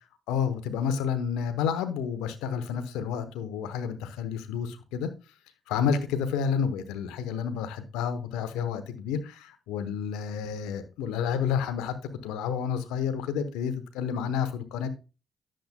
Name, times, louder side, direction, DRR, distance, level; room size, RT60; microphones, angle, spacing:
voice 1, 0.3-5.1 5.7-12.0 12.2-14.9, left 7 dB, 85° left, 0.9 m, -30 dB
10.5 x 7.4 x 2.2 m
supercardioid pair, 50°, 0 cm